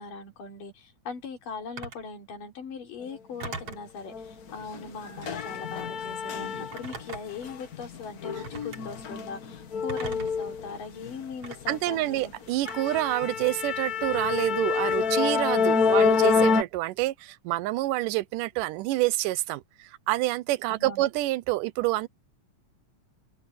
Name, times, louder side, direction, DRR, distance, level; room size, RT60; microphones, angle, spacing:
voice 1, 0.0-12.3 15.6-16.0 20.7-21.0, left 5 dB, 85° left, 5.2 m, -40 dB
Telephone, 1.8-2.1 3.4-3.9 5.2-5.5 6.7-7.5 8.4-8.8 9.9-10.4 11.4-11.6 12.7-13.1, right 3 dB, 45° right, 3.9 m, -39 dB
sound 1, 4.1-4.3 4.6-7.0 7.4-11.1 11.5-11.8 12.2-12.3 12.6-16.6, left 5 dB, 65° left, 0.9 m, -27 dB
voice 2, 11.7-22.1, right 17 dB, 85° right, 2.3 m, -27 dB
omnidirectional pair, 3.7 m